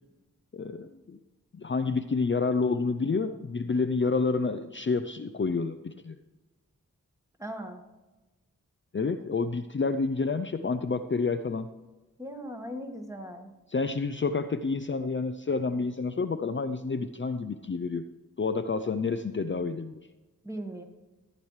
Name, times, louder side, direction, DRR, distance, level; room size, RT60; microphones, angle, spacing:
voice 1, 0.5-1.2 1.5-6.2 8.9-11.7 13.7-18.1 18.4-19.9, left 4 dB, 35° left, 8 dB, 0.5 m, -29 dB
voice 2, 7.4-7.8 12.2-13.5 20.4-20.8, equal, 10° right, 3 dB, 1.6 m, -38 dB
15.0 x 8.9 x 3.2 m, 1.1 s
wide cardioid pair, 45°, 33 cm